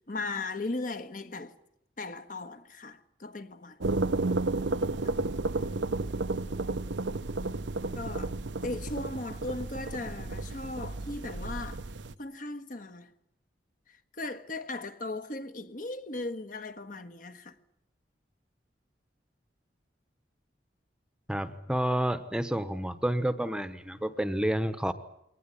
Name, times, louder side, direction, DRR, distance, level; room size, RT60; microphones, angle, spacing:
voice 1, 0.0-1.5 2.0-4.0 5.0-5.1 7.9-8.4 8.6-11.8 12.2-13.1 14.2-17.6, left 2 dB, 50° left, 1.5 m, -37 dB
sound 1, 3.8-12.1, right 2 dB, 85° right, 0.9 m, -32 dB
voice 2, 21.3-24.9, right 1 dB, 5° right, 1.0 m, -29 dB
23.0 x 19.0 x 10.0 m
head